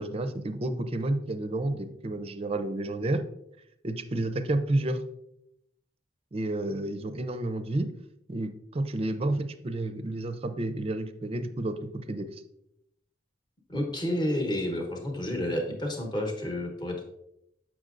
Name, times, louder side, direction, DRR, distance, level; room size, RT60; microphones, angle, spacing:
voice 1, 0.0-3.2 3.8-5.0 6.3-7.9 8.3-12.3, right 1 dB, 35° right, 9 dB, 0.5 m, -30 dB
voice 2, 13.7-17.0, left 1 dB, 25° left, 2 dB, 1.0 m, -30 dB
7.6 x 6.0 x 2.5 m, 0.79 s
head